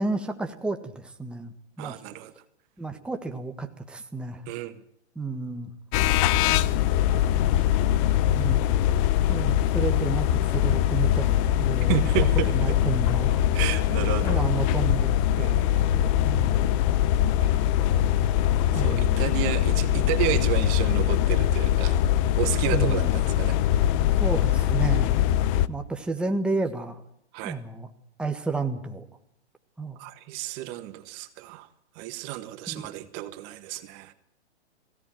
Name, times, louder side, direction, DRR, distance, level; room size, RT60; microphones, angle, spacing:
voice 1, 0.0-2.0 2.8-4.4 5.1-5.7 7.1-7.2 8.3-8.7 9.3-12.1 12.5-13.4 14.2-15.7 16.2-16.6 18.7-19.3 22.7-23.1 24.2-25.1 25.7-27.0 27.4-27.9 28.2-29.0 29.8-30.0 32.7-32.9, right 3 dB, 5° right, 4 dB, 1.5 m, -31 dB
voice 2, 1.8-2.3 4.5-4.8 11.9-12.5 13.5-14.4 15.4-16.3 17.4-17.6 18.7-22.0 22.4-23.6 27.3-27.6 30.0-31.7 31.9-34.1, right 15 dB, 30° right, 11 dB, 1.5 m, -31 dB
sound 1, 5.9-25.7, left 11 dB, 30° left, 0.8 m, -22 dB
22.5 x 17.0 x 9.0 m, 0.71 s
hypercardioid pair, 140°, 33 cm